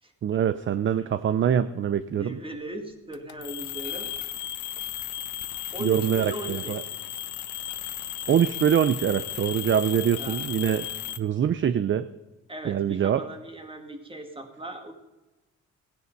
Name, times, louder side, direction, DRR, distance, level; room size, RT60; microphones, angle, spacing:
voice 1, 0.2-2.4 5.8-6.8 8.3-10.9 11.2-12.1 12.7-13.2, right 9 dB, 40° right, 14 dB, 0.6 m, -24 dB
voice 2, 2.2-4.1 5.7-6.8 9.9-10.5 12.5-14.9, right 1 dB, 15° right, 5 dB, 2.2 m, -38 dB
sound 1, 3.1-11.2, left 12 dB, 70° left, 0.8 m, -35 dB
17.0 x 10.0 x 5.3 m, 1.1 s
cardioid pair, 90°, 30 cm